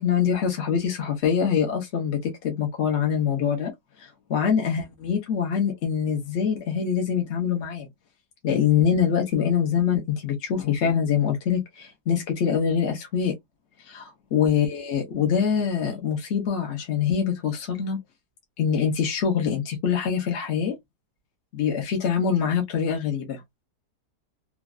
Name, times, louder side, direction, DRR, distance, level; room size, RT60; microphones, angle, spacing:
voice 1, 0.0-3.7 4.0-7.9 8.4-13.3 13.8-18.0 18.6-20.7 21.5-23.4, left 7 dB, 55° left, 1.0 m, -24 dB
3.1 x 2.4 x 2.3 m
omnidirectional pair, 1.7 m